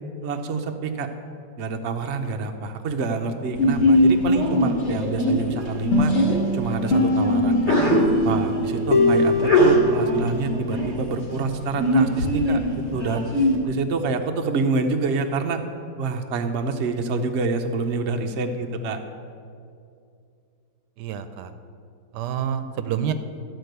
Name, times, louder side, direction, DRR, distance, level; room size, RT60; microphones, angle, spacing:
voice 1, 0.2-1.1 1.6-6.1 6.5-7.7 8.2-12.6 12.9-13.3 13.6-15.6 16.0-19.0, right 4 dB, 55° right, 5 dB, 0.9 m, -27 dB
Sneeze, 3.6-13.5, equal, 75° left, 2.6 m, -22 dB
voice 2, 4.6-5.3 21.0-21.5 22.1-23.1, right 9 dB, 80° right, 10 dB, 1.2 m, -29 dB
sound 1, 5.9-10.6, left 2 dB, 45° left, 1.2 m, -23 dB
13.0 x 4.5 x 7.9 m, 2.4 s
omnidirectional pair, 1.8 m